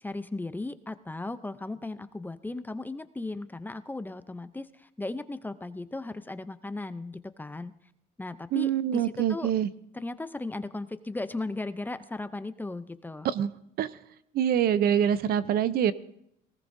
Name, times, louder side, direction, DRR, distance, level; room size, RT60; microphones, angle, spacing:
voice 1, 0.0-7.7 8.2-9.5 9.9-13.3, left 2 dB, 10° left, 12 dB, 0.6 m, -36 dB
voice 2, 8.5-9.7 13.3-13.5 13.8-13.9 14.3-15.9, right 9 dB, 65° right, 15 dB, 0.7 m, -25 dB
19.0 x 18.0 x 2.7 m, 0.76 s
cardioid pair, 110°, 17 cm